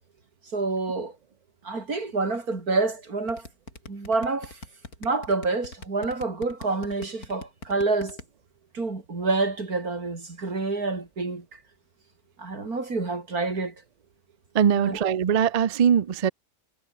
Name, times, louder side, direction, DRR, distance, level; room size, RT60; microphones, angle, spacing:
voice 1, 0.5-1.2 1.6-3.5 3.9-4.6 5.0-8.2 8.7-11.4 12.4-13.7 14.7-15.0, right 3 dB, 85° right, 4.3 m, -28 dB
sound 1, 3.3-8.2, left 3 dB, 85° left, 5.1 m, -41 dB
voice 2, 14.5-16.3, right 8 dB, 55° right, 0.4 m, -21 dB
omnidirectional pair, 1.5 m